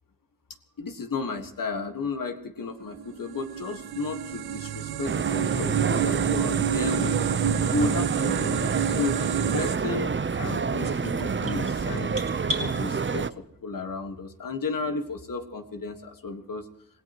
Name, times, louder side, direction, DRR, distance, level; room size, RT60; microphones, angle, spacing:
voice 1, 0.8-7.2 7.5-9.2 9.5-12.2 12.5-13.3 13.6-16.7, left 3 dB, 60° left, 5 dB, 1.6 m, -33 dB
sound 1, 2.9-9.8, right 10 dB, 85° right, 0.6 m, -29 dB
sound 2, 5.0-13.3, right 5 dB, 30° right, 0.7 m, -28 dB
sound 3, 10.8-12.7, right 1 dB, 60° right, 3.7 m, -35 dB
26.5 x 17.0 x 3.0 m, 0.77 s
cardioid pair, 55°, 36 cm